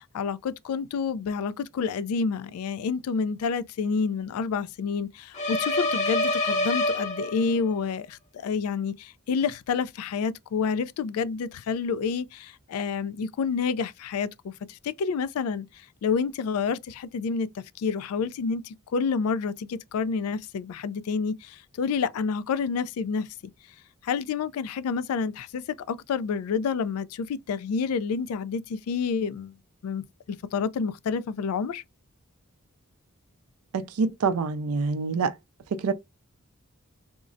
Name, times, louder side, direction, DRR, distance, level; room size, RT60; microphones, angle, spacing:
voice 1, 0.0-23.3 24.0-29.5 29.8-31.8, left 5 dB, 75° left, 0.3 m, -29 dB
sound 1, 5.3-7.7, left 2 dB, 35° left, 0.7 m, -26 dB
voice 2, 33.7-35.3 35.7-35.9, right 4 dB, 80° right, 0.4 m, -26 dB
3.6 x 2.0 x 2.5 m
head